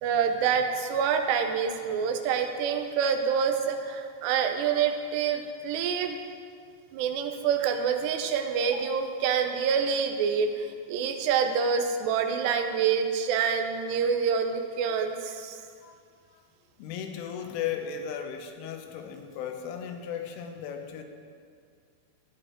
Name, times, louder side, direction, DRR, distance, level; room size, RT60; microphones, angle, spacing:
voice 1, 0.0-6.2 6.9-15.6, right 6 dB, 75° right, 5 dB, 2.6 m, -27 dB
voice 2, 16.8-21.0, left 8 dB, 90° left, 5 dB, 3.5 m, -36 dB
14.5 x 9.6 x 4.4 m, 2.2 s
omnidirectional pair, 5.6 m